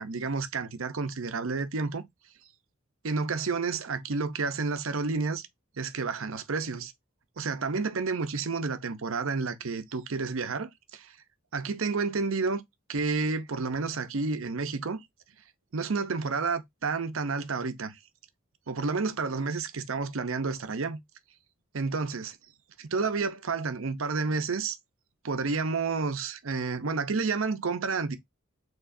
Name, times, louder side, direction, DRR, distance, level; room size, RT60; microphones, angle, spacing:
voice 1, 0.0-2.0 3.0-5.5 5.8-6.9 7.4-11.2 11.5-12.6 12.9-15.0 15.7-18.0 18.7-21.0 21.7-22.3 22.9-24.8 25.2-28.2, right 4 dB, 75° right, 0.7 m, -30 dB
4.8 x 3.9 x 2.6 m
head